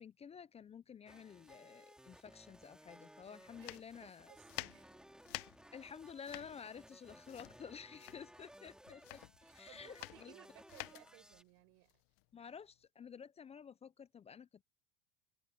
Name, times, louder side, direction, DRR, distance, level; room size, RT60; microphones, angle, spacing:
voice 1, 0.0-4.3 5.7-9.2 9.5-10.3 12.3-14.6, left 7 dB, 20° left, 0.3 m, -52 dB
sound 1, 1.1-11.4, equal, ahead, 2.8 m, -60 dB
voice 2, 3.3-5.0 9.4-12.0, right 33 dB, 70° right, 7.1 m, -62 dB
sound 2, 3.6-12.8, left 24 dB, 65° left, 1.1 m, -50 dB
supercardioid pair, 105°, 36 cm